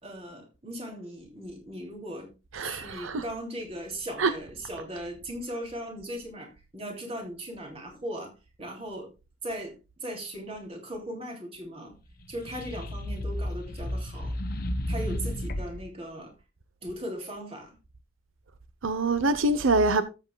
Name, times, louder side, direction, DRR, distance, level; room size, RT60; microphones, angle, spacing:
voice 1, 0.0-2.3 2.6-9.1 9.4-12.0 12.3-14.4 14.9-16.3 16.8-17.8, right 1 dB, 30° right, 2.8 m, -38 dB
voice 2, 2.5-3.3 4.2-4.4 18.8-20.0, right 2 dB, 85° right, 0.8 m, -25 dB
sound 1, 12.2-15.9, left 1 dB, 45° left, 1.0 m, -32 dB
13.5 x 7.7 x 2.3 m
head